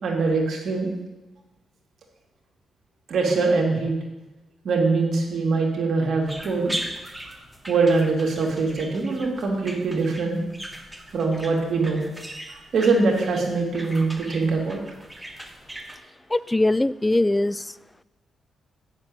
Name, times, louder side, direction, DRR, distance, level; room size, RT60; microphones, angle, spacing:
voice 1, 0.0-0.9 3.1-3.9 4.6-6.7 7.7-10.4 11.1-12.0 12.5-14.8, right 3 dB, 65° right, -1 dB, 2.6 m, -23 dB
sound 1, 6.3-16.0, right 1 dB, 10° right, 1.8 m, -39 dB
voice 2, 16.3-17.7, left 2 dB, 15° left, 18 dB, 0.4 m, -21 dB
7.7 x 6.8 x 8.1 m, 1.1 s
supercardioid pair, 50°, 0 cm